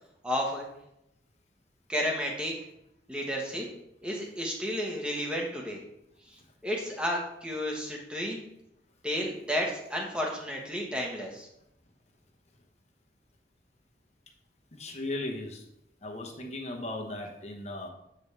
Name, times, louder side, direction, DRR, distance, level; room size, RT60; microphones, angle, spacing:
voice 1, 0.2-0.7 1.9-2.5 3.1-3.6 4.0-5.8 6.6-8.4 9.0-11.5, equal, 5° right, -1 dB, 1.2 m, -32 dB
voice 2, 14.7-15.6 16.0-17.9, left 2 dB, 40° left, 1 dB, 1.1 m, -37 dB
8.0 x 5.2 x 3.3 m, 0.82 s
head